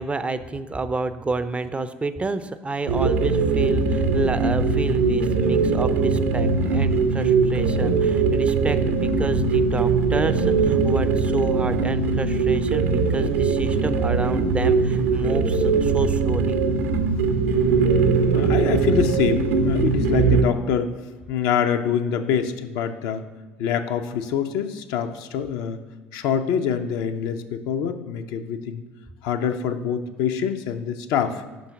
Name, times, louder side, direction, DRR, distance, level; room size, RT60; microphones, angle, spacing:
voice 1, 0.0-16.6, right 3 dB, 20° right, 12 dB, 0.4 m, -29 dB
sound 1, 2.9-20.4, right 4 dB, 75° right, 0.6 m, -21 dB
voice 2, 18.3-20.9 21.3-23.2 23.6-25.8 26.1-28.8 29.2-31.4, left 8 dB, 65° left, 8 dB, 0.4 m, -25 dB
5.5 x 3.9 x 5.7 m, 1.3 s
figure-of-eight pair, 60°, 7 cm